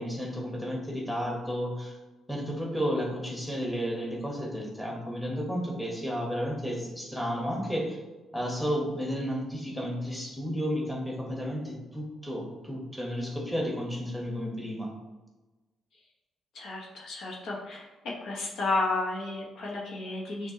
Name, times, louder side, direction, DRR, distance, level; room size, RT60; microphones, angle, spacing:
voice 1, 0.0-2.0 2.3-8.0 8.3-14.9, equal, ahead, -2 dB, 1.1 m, -32 dB
voice 2, 16.5-17.9 18.2-20.5, left 2 dB, 75° left, -3 dB, 1.1 m, -32 dB
6.0 x 2.5 x 2.8 m, 1.1 s
cardioid pair, 90°, 0 cm